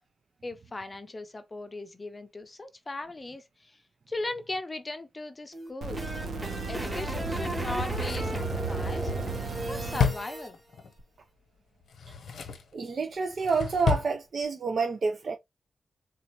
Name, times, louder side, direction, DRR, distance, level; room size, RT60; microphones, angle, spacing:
voice 1, 0.4-3.8 4.1-6.1 6.7-9.1 9.7-10.6, left 2 dB, 25° left, 0.6 m, -38 dB
sound 1, 5.5-10.5, right 1 dB, 20° right, 1.6 m, -34 dB
sound 2, 5.8-10.0 11.0-11.1, right 3 dB, 90° right, 0.9 m, -36 dB
Drawer open or close, 7.6-10.9 11.8-12.7 13.1-14.1 14.4-14.5, left 6 dB, 85° left, 0.9 m, -32 dB
voice 2, 12.7-15.4, right 4 dB, 55° right, 0.6 m, -28 dB
4.1 x 2.5 x 2.9 m
wide cardioid pair, 125°, 0 cm